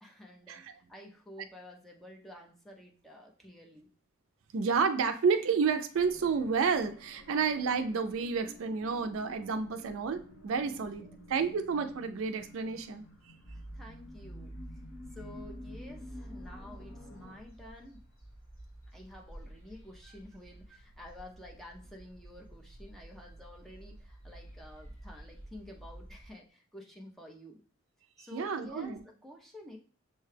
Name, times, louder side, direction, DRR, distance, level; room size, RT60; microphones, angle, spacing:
voice 1, 0.0-3.9 11.0-11.1 13.5-14.5 15.1-18.0 18.9-27.6 28.2-29.8, left 1 dB, ahead, 0 dB, 0.5 m, -51 dB
voice 2, 4.5-13.1 28.3-29.0, right 5 dB, 65° right, 8 dB, 0.4 m, -30 dB
sound 1, 5.9-17.4, left 1 dB, 80° left, 1.9 m, -51 dB
sound 2, 13.4-26.3, right 1 dB, 60° left, 2.3 m, -50 dB
6.5 x 2.2 x 3.2 m, 0.42 s
head